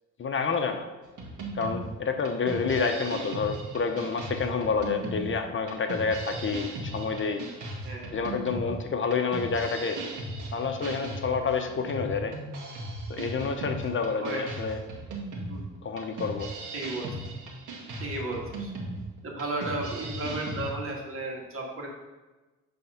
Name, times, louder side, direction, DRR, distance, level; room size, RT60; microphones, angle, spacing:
voice 1, 0.2-0.8 1.6-7.4 8.1-10.0 10.5-12.3 13.1-14.8 15.8-16.5, left 5 dB, 40° left, 5 dB, 0.8 m, -29 dB
sound 1, 1.2-20.7, right 2 dB, 80° right, 1.7 m, -37 dB
voice 2, 16.7-17.1 18.0-18.7 19.2-21.9, right 2 dB, 45° right, -1 dB, 2.2 m, -34 dB
9.2 x 3.6 x 5.7 m, 1.2 s
cardioid pair, 90°, 30 cm